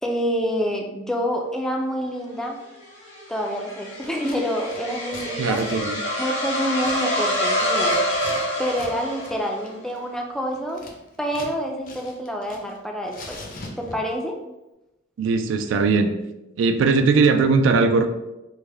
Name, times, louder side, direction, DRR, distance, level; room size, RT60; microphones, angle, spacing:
voice 1, 0.0-2.6 3.3-5.6 6.2-8.0 8.6-10.9 11.2-13.4 13.8-14.4, equal, 5° left, 1 dB, 0.3 m, -27 dB
sound 1, 2.6-9.7, equal, 75° left, 1.0 m, -26 dB
Scissors, 4.0-4.4 4.7-8.4 8.7-8.9 9.2-9.4 9.7-11.6 11.8-12.8 13.1-14.2, left 2 dB, 50° left, 0.6 m, -42 dB
voice 2, 5.4-6.0 15.2-16.1 16.6-18.1, right 4 dB, 90° right, 7 dB, 0.3 m, -19 dB
3.3 x 2.1 x 3.2 m, 0.97 s
head